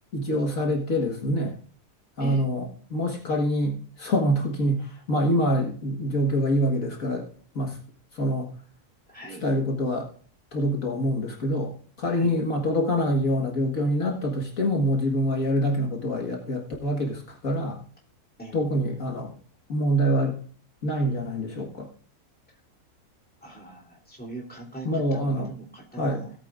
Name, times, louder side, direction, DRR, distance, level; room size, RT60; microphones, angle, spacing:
voice 1, 0.1-1.6 2.2-7.3 7.5-7.8 8.1-8.5 9.4-10.1 10.5-17.8 18.5-19.3 19.7-20.4 20.8-21.9 24.8-25.5 26.0-26.2, equal, 60° left, 1 dB, 2.0 m, -25 dB
voice 2, 9.1-9.4 12.1-12.4 18.4-18.6 23.4-26.3, right 2 dB, 5° left, -3 dB, 3.0 m, -41 dB
18.0 x 8.4 x 2.5 m, 0.44 s
omnidirectional pair, 1.6 m